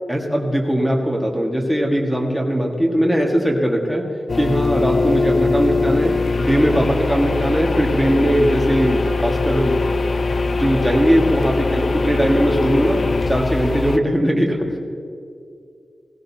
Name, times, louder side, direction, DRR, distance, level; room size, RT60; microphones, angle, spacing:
voice 1, 0.1-9.8 10.4-14.8, equal, ahead, 0 dB, 1.6 m, -19 dB
sound 1, 4.3-14.0, left 3 dB, 50° left, 0.4 m, -21 dB
18.0 x 16.5 x 2.8 m, 2.3 s
wide cardioid pair, 150°, 0 cm